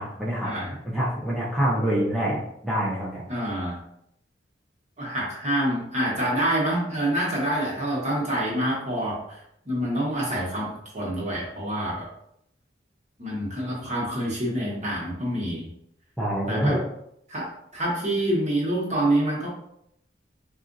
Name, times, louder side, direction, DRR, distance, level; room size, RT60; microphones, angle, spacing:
voice 1, 0.0-0.5 0.8-3.2 16.2-16.8, right 1 dB, ahead, -8 dB, 0.5 m, -26 dB
voice 2, 3.3-3.8 5.0-9.4 9.6-12.0 13.2-15.7 16.5-16.8 17.3-19.5, right 1 dB, 40° right, -5 dB, 1.2 m, -27 dB
4.1 x 2.4 x 2.6 m, 0.75 s
head